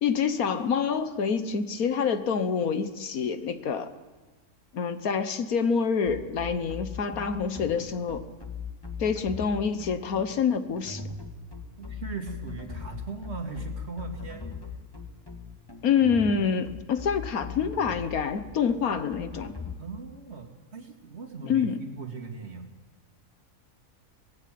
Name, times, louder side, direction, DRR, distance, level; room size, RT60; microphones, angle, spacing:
voice 1, 0.0-3.9 4.7-8.2 9.0-11.0 15.8-19.5 21.4-21.8, left 6 dB, 80° left, 10 dB, 1.6 m, -27 dB
sound 1, 6.0-19.7, left 5 dB, 15° left, 2.0 m, -39 dB
voice 2, 11.8-14.5 19.8-22.7, right 4 dB, 50° right, 4 dB, 2.7 m, -39 dB
24.0 x 19.0 x 7.7 m, 1.2 s
omnidirectional pair, 1.5 m